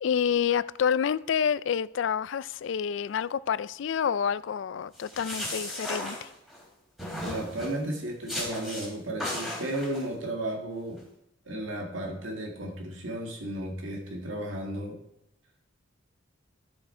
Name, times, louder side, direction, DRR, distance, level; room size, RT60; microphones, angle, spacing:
voice 1, 0.0-6.3, left 7 dB, 65° left, 0.3 m, -28 dB
sound 1, 4.9-6.6 7.0-7.8 8.3-8.9 9.2-10.0, left 1 dB, ahead, 3.2 m, -35 dB
voice 2, 7.2-11.0 11.5-15.0, right 1 dB, 70° right, 2.0 m, -34 dB
13.5 x 7.0 x 4.4 m
head